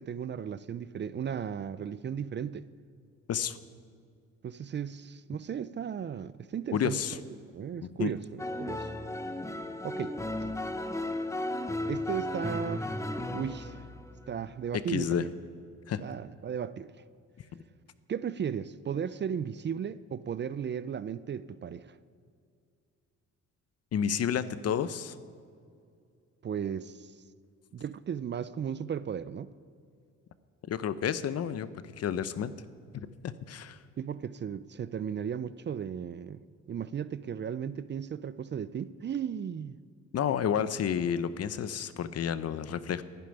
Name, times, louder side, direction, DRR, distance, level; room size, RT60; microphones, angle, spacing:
voice 1, 0.0-2.7 4.4-7.2 7.5-8.9 9.8-10.2 11.9-12.9 13.3-13.8 14.3-15.3 16.0-17.0 18.1-22.0 26.4-27.1 27.7-29.5 34.0-39.8, right 8 dB, 35° right, 0.5 m, -35 dB
voice 2, 6.7-7.2 8.0-8.1 14.9-15.2 15.9-16.0 23.9-25.1 30.7-32.5 32.9-33.8 40.1-43.0, left 8 dB, 55° left, 0.8 m, -30 dB
sound 1, 8.4-15.3, left 1 dB, 10° left, 0.9 m, -35 dB
11.5 x 9.2 x 10.0 m
cardioid pair, 90°, 30 cm